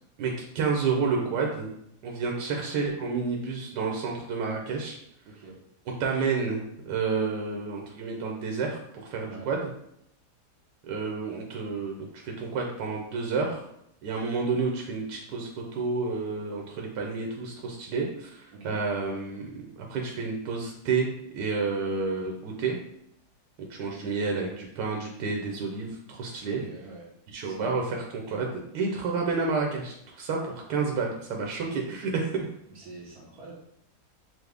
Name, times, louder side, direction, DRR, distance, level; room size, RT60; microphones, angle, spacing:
voice 1, 0.2-1.7 2.0-5.0 6.0-9.7 10.9-13.6 14.0-21.1 21.3-22.8 23.7-26.6 27.3-32.4, right 4 dB, 90° right, 0 dB, 1.3 m, -30 dB
voice 2, 5.3-5.6 9.3-9.5 18.5-18.8 26.5-27.1 27.4-27.8 32.7-33.5, right 3 dB, 65° right, -4 dB, 1.3 m, -45 dB
6.0 x 2.0 x 3.3 m, 0.75 s
omnidirectional pair, 1.8 m